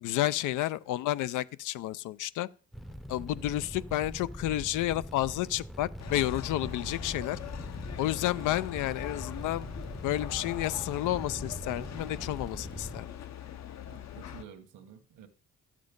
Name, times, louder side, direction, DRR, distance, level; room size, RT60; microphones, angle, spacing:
voice 1, 0.0-2.5 3.1-7.4 8.0-9.7 10.0-13.1, left 14 dB, 85° left, 0.5 m, -31 dB
Fire, 2.7-13.0, equal, ahead, 0.6 m, -42 dB
sound 1, 6.0-14.4, left 11 dB, 60° left, 0.9 m, -42 dB
voice 2, 13.8-15.3, right 8 dB, 80° right, 1.4 m, -50 dB
13.0 x 7.5 x 5.3 m
cardioid pair, 90°, 30 cm